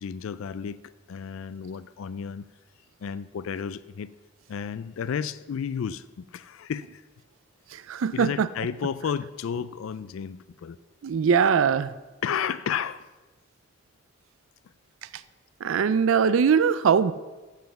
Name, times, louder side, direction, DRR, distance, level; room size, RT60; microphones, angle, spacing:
voice 1, 0.0-2.5 3.0-4.1 4.5-7.0 8.1-10.8 12.2-13.1, left 7 dB, 85° left, 15 dB, 0.4 m, -32 dB
voice 2, 7.7-8.5 11.0-11.9 15.0-15.2 15.6-17.1, right 6 dB, 80° right, 15 dB, 0.4 m, -22 dB
7.8 x 7.4 x 7.0 m, 1.2 s
head